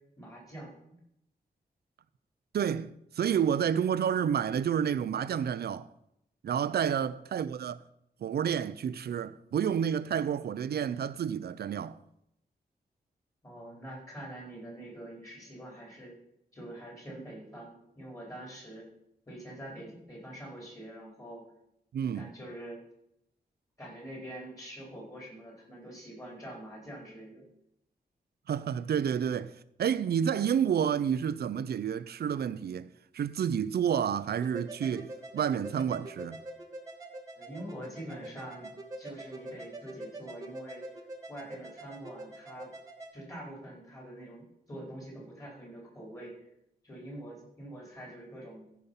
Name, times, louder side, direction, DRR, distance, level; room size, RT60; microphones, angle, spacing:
voice 1, 0.2-0.7 6.8-7.1 13.4-16.1 16.5-18.9 19.3-21.4 22.1-22.8 23.8-27.4 37.4-38.7 39.0-40.8 41.3-42.7 43.1-46.5 46.8-48.6, right 1 dB, 20° left, 4.6 m, -45 dB
voice 2, 2.5-5.9 6.4-7.8 8.2-12.0 21.9-22.3 28.5-29.5 29.8-32.9 33.1-36.4, right 8 dB, 85° right, 0.5 m, -30 dB
sound 1, 34.4-43.1, right 2 dB, 20° right, 1.5 m, -45 dB
14.5 x 5.7 x 5.6 m
wide cardioid pair, 140°, 16 cm